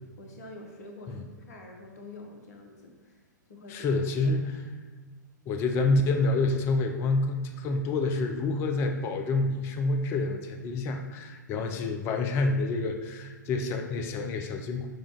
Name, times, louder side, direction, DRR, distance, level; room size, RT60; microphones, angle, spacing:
voice 1, 0.2-3.2 3.5-4.3, left 2 dB, 55° left, 2 dB, 0.9 m, -47 dB
voice 2, 3.7-4.6 5.5-14.9, left 3 dB, 25° left, 5 dB, 0.4 m, -28 dB
6.0 x 2.4 x 3.7 m, 1.4 s
figure-of-eight pair, 110°, 10 cm